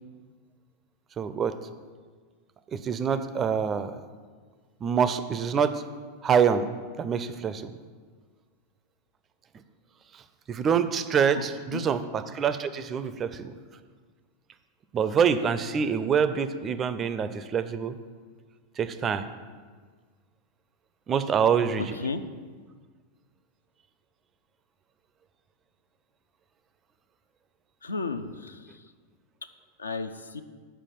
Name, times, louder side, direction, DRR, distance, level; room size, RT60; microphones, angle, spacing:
voice 1, 1.2-1.5 2.7-3.9 4.8-5.8 6.2-6.7 7.0-7.7 10.5-13.5 14.9-17.9 18.8-19.3 21.1-22.0, right 7 dB, 25° right, 12 dB, 0.4 m, -25 dB
voice 2, 27.8-28.6 29.8-30.4, left 4 dB, 75° left, 10 dB, 0.4 m, -33 dB
5.6 x 5.0 x 6.6 m, 1.5 s
figure-of-eight pair, 90°, 0 cm